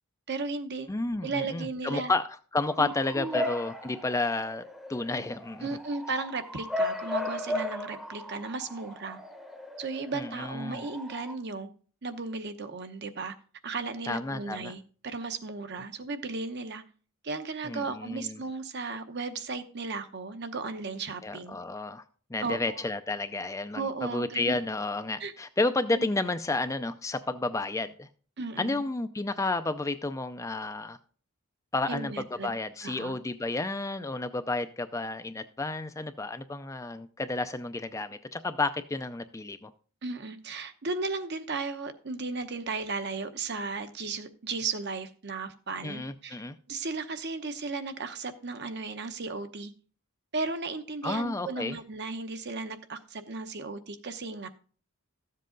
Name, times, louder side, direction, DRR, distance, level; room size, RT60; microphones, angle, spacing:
voice 1, 0.3-0.9 1.2-2.1 2.8-3.5 5.6-9.2 9.8-11.7 12.0-13.3 13.6-16.8 17.2-21.6 22.4-22.8 23.7-24.6 25.2-25.3 25.9-26.1 28.4-28.8 31.9-32.6 32.8-33.1 40.0-46.4 46.7-49.7 50.3-54.5, right 3 dB, 50° right, 9 dB, 0.9 m, -35 dB
voice 2, 0.9-4.6 4.9-5.7 10.1-10.8 14.1-14.7 17.6-18.4 21.2-22.0 22.3-28.1 28.6-31.0 31.7-32.1 32.4-39.7 45.8-46.5 51.0-51.8, left 2 dB, 15° left, 10 dB, 0.4 m, -31 dB
Bark / Motor vehicle (road) / Siren, 2.6-11.3, left 1 dB, ahead, 0.8 m, -36 dB
13.5 x 7.6 x 3.8 m, 0.43 s
head